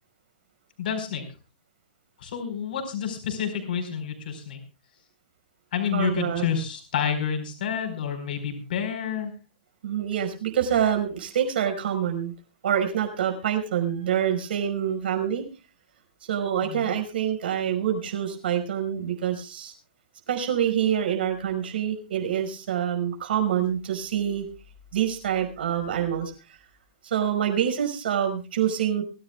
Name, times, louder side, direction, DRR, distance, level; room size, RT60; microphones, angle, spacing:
voice 1, 0.8-1.2 2.2-4.6 5.7-9.3 16.6-17.0, left 8 dB, 70° left, 5 dB, 4.6 m, -29 dB
voice 2, 5.9-6.5 9.8-12.3 12.6-15.4 16.2-19.7 20.3-24.4 24.9-26.3 27.0-29.0, right 9 dB, 75° right, 5 dB, 5.3 m, -26 dB
23.5 x 14.5 x 2.4 m, 0.32 s
hypercardioid pair, 165°, 5 cm